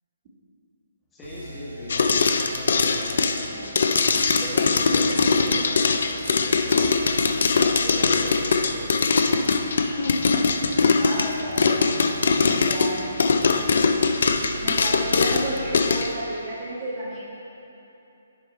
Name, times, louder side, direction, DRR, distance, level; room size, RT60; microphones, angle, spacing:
voice 1, 1.1-3.7 4.4-6.9 7.8-9.2, equal, 10° left, -9 dB, 1.4 m, -39 dB
sound 1, 1.2-16.0, right 1 dB, 80° right, 1.3 m, -41 dB
sound 2, 1.9-16.1, left 4 dB, 55° left, 0.4 m, -21 dB
voice 2, 11.0-12.0 12.4-13.0 14.6-17.2, right 1 dB, 30° right, -6 dB, 1.3 m, -32 dB
10.0 x 5.3 x 4.2 m, 2.9 s
figure-of-eight pair, 135°, 0 cm